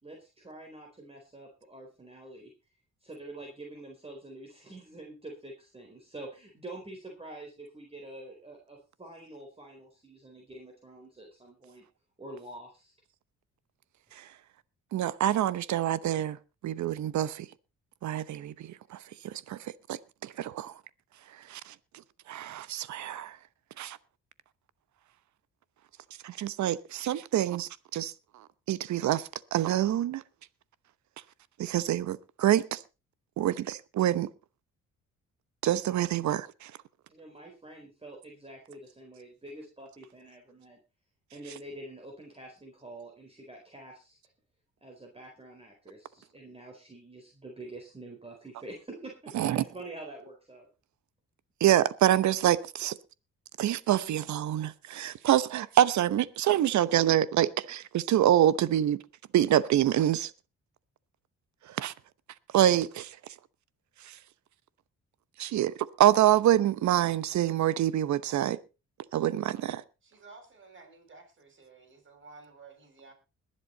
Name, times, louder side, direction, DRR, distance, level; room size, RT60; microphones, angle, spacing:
voice 1, 0.0-2.5 3.0-11.8 12.2-12.9 37.1-40.8 41.3-44.2 44.8-50.7, right 2 dB, 20° right, 4.2 m, -46 dB
voice 2, 14.9-16.4 16.6-17.5 18.0-19.0 19.2-19.6 19.9-20.7 21.5-21.6 22.3-23.4 23.8-24.0 26.2-28.1 28.7-29.2 29.5-30.2 31.6-32.8 33.4-34.3 35.6-36.7 49.3-49.6 51.6-53.0 53.6-59.0 59.3-60.3 61.8-61.9 62.5-63.1 65.4-68.6 69.1-69.8, right 12 dB, 70° right, 1.0 m, -26 dB
voice 3, 70.0-73.1, right 4 dB, 40° right, 6.9 m, -53 dB
21.5 x 7.8 x 4.0 m
cardioid pair, 90°, 30 cm